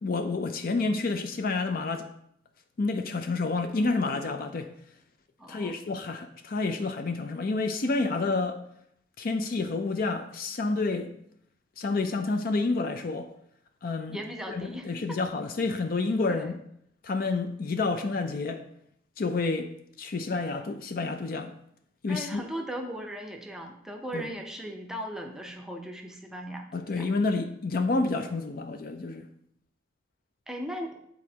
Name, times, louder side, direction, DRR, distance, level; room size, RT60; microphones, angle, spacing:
voice 1, 0.0-2.1 2.8-4.7 5.5-8.6 9.2-11.1 11.8-13.3 13.8-14.2 14.5-16.5 17.0-18.6 19.2-19.7 20.0-21.5 22.0-22.4 24.1-24.3 26.7-29.3, left 3 dB, 50° left, 0.5 m, -29 dB
voice 2, 5.4-5.8 14.1-15.2 16.3-16.6 22.1-27.1 30.5-31.0, equal, 5° right, 0.6 m, -38 dB
8.5 x 4.1 x 2.9 m
head